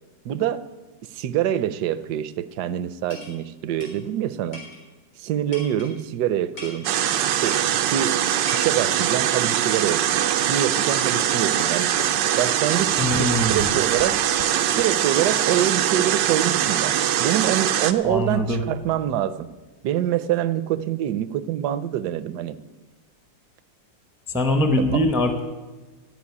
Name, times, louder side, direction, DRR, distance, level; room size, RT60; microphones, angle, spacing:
voice 1, 0.2-0.6 1.1-4.6 5.2-6.9 7.3-8.2 8.5-11.9 12.4-14.2 14.7-19.5 19.8-22.6 24.8-25.1, right 11 dB, 70° right, 15 dB, 1.1 m, -25 dB
sound 1, 3.1-3.4 3.8-3.9 4.5-4.8 5.5-5.9 6.6-6.8 7.5-7.8 8.5-8.6, left 2 dB, 75° left, 4.3 m, -38 dB
sound 2, 6.8-17.9, right 10 dB, 90° right, 1.4 m, -22 dB
sound 3, 11.2-11.3 11.6-11.7 12.0-12.1 12.4-12.5 12.8-12.9 13.2-13.3 13.6-13.7 14.0-14.1 14.4-14.5 14.8-14.9 15.2-15.3 15.6-15.7 16.0-16.1, left 4 dB, 40° left, 1.1 m, -34 dB
voice 2, 13.0-13.7 18.0-18.6 24.3-25.4, left 1 dB, ahead, 6 dB, 0.7 m, -22 dB
14.0 x 5.5 x 9.6 m, 1.3 s
omnidirectional pair, 1.9 m